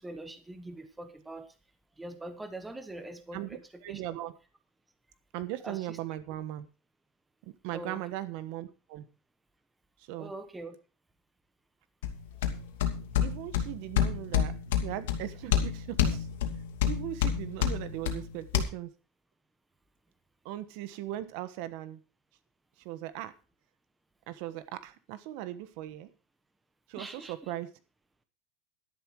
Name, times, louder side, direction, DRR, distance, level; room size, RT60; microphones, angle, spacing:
voice 1, 0.0-1.5 2.0-4.0 5.6-6.0 7.7-8.0 10.2-10.8 27.0-27.5, right 2 dB, 5° right, 1.2 m, -43 dB
voice 2, 3.3-4.3 5.3-6.7 7.4-9.1 10.0-10.3 13.2-16.3 16.9-18.9 20.4-22.0 22.8-23.3 24.3-26.1 26.9-27.7, right 14 dB, 50° right, 1.2 m, -39 dB
sound 1, 12.0-18.6, left 9 dB, 80° left, 2.7 m, -29 dB
12.0 x 11.0 x 4.7 m
supercardioid pair, 170°, 0 cm